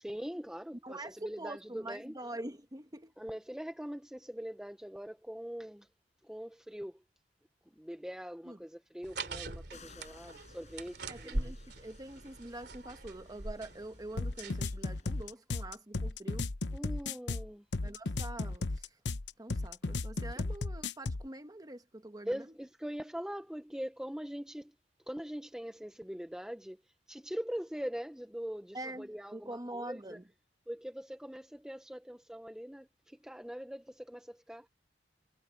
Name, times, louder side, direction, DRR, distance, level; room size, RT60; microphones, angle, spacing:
voice 1, 0.0-2.2 3.2-5.9 6.2-7.0 7.7-11.6 16.7-17.6 22.3-24.7 25.1-26.8 27.1-30.2 30.7-34.7, equal, 5° right, 0.7 m, -42 dB
voice 2, 0.8-3.1 8.4-8.6 11.1-16.5 17.8-18.9 19.4-22.4 28.7-30.2, right 1 dB, 20° right, 1.3 m, -45 dB
sound 1, 9.0-14.8, right 2 dB, 65° right, 3.1 m, -42 dB
sound 2, 9.7-15.3, left 4 dB, 40° left, 7.7 m, -59 dB
sound 3, 14.2-21.3, left 3 dB, 75° left, 0.9 m, -35 dB
head